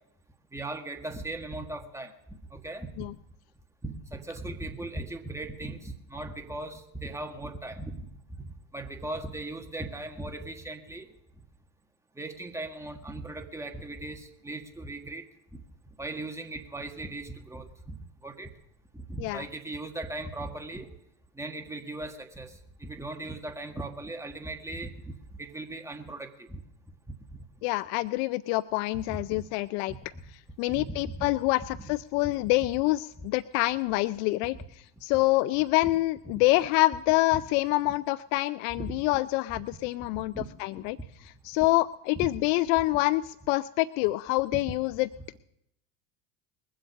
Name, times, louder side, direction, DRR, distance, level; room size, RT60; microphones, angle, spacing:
voice 1, 0.5-2.1 2.5-3.1 3.8-8.1 8.4-11.1 12.2-15.2 16.0-18.0 18.2-18.5 18.9-20.9 21.4-26.6 29.1-29.2 30.1-30.2 30.7-31.3 31.8-31.9 34.5-34.6 36.3-36.4 37.3-37.4 38.8-38.9 39.5-39.6 40.1-40.5 40.7-40.9 42.2-42.3 44.5-44.6, right 2 dB, 5° right, 4 dB, 1.6 m, -38 dB
voice 2, 27.6-29.9 30.6-34.6 35.0-40.3 40.6-41.0 41.4-45.1, left 19 dB, 60° left, 17 dB, 0.5 m, -26 dB
21.5 x 7.9 x 6.3 m, 0.81 s
hypercardioid pair, 95°, 47 cm